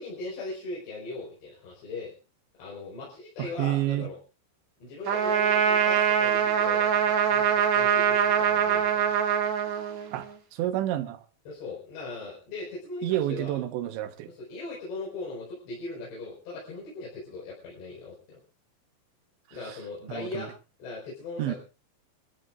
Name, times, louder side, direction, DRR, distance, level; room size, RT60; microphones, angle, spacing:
voice 1, 0.0-2.1 2.5-4.2 4.8-9.1 11.5-13.6 14.3-18.4 19.5-20.5 20.8-21.6, left 3 dB, 70° left, 6.9 m, -39 dB
voice 2, 3.4-4.1 10.1-10.3 10.5-11.2 13.0-14.3 19.6-19.8 20.1-20.5 21.4-21.6, right 14 dB, 85° right, 3.4 m, -29 dB
Trumpet, 5.1-10.3, right 8 dB, 50° right, 2.5 m, -23 dB
27.0 x 13.5 x 2.5 m
omnidirectional pair, 5.2 m